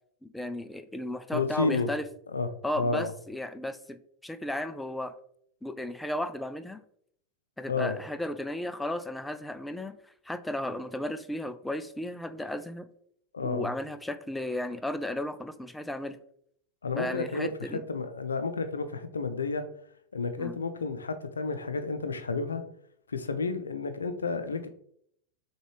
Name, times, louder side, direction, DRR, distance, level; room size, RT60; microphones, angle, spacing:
voice 1, 0.2-2.1 2.6-5.1 5.6-6.8 7.6-9.9 10.2-12.9 13.4-16.2 17.0-17.8 20.4-20.6, left 1 dB, 5° left, 10 dB, 0.3 m, -34 dB
voice 2, 1.3-1.9 2.3-2.5 2.7-3.1 7.7-8.0 13.3-13.7 16.8-19.7 20.1-22.6 23.1-24.7, left 4 dB, 75° left, 9 dB, 0.5 m, -31 dB
6.1 x 2.3 x 3.3 m, 0.68 s
figure-of-eight pair, 90°, 0 cm